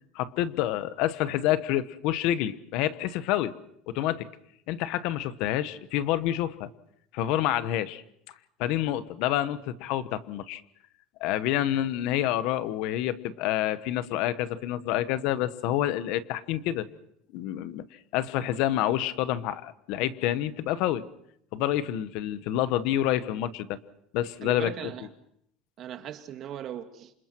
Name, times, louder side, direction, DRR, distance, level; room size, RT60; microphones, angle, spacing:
voice 1, 0.1-3.6 3.9-4.3 4.7-6.7 7.1-8.0 8.6-10.6 11.2-16.9 17.3-17.8 18.1-21.0 21.5-23.8 24.1-24.9, left 13 dB, 65° left, 1.2 m, -28 dB
voice 2, 24.4-25.1 25.8-27.1, right 10 dB, 45° right, 2.0 m, -38 dB
28.0 x 26.0 x 4.6 m
supercardioid pair, 130°, 0 cm